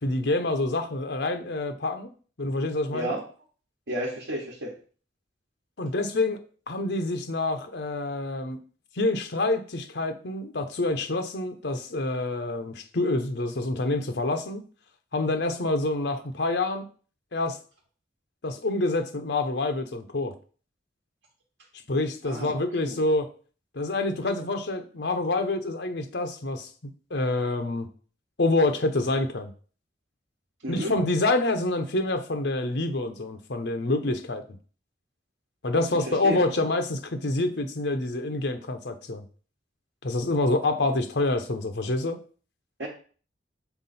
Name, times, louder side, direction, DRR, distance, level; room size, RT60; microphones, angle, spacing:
voice 1, 0.0-2.1 2.4-3.2 5.8-6.4 6.7-8.6 9.0-14.6 15.1-16.9 17.3-17.6 18.4-20.3 21.9-23.3 23.7-27.9 28.4-29.5 30.7-34.4 35.6-39.2 40.0-42.2, left 2 dB, 65° left, 0.8 m, -27 dB
voice 2, 2.9-3.2 3.9-4.8 22.2-22.5 22.8-22.9 30.6-31.0 36.1-36.4 42.8-42.9, equal, 75° right, 1.2 m, -31 dB
6.0 x 3.8 x 4.2 m
head